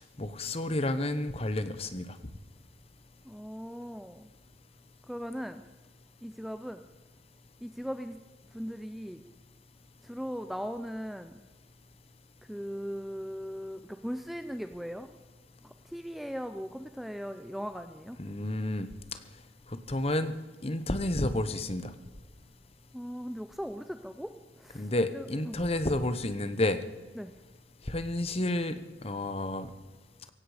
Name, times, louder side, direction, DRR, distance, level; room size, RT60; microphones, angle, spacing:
voice 1, 0.0-2.1 18.2-18.9 19.9-20.3 20.6-21.9 24.7-26.8 27.9-29.7, left 1 dB, 30° left, 11 dB, 1.0 m, -30 dB
voice 2, 3.2-4.3 5.1-5.6 6.2-6.8 7.6-8.2 8.5-9.2 10.0-11.4 12.5-15.1 15.6-18.2 22.9-24.3 24.6-25.6 27.2-27.3, equal, ahead, 8 dB, 0.5 m, -39 dB
16.5 x 16.5 x 5.1 m, 1.3 s
head